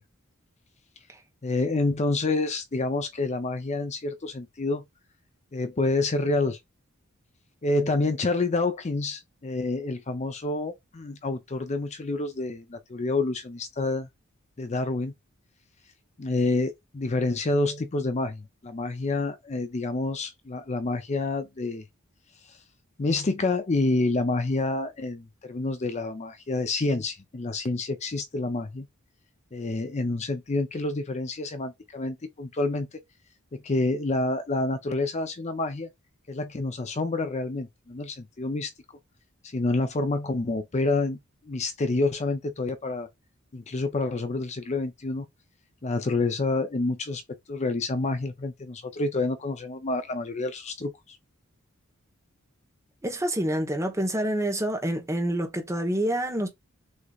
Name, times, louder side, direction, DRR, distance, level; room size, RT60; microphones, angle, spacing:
voice 1, 1.4-4.8 5.5-6.6 7.6-14.1 14.6-15.1 16.2-21.8 23.0-28.9 29.5-32.9 33.5-35.9 36.3-38.7 39.5-41.2 41.4-43.1 43.5-45.3 45.8-47.2 47.5-51.2, left 2 dB, 35° left, 0.5 m, -28 dB
voice 2, 53.0-56.5, right 1 dB, 15° right, 1.1 m, -27 dB
6.3 x 2.9 x 2.4 m
head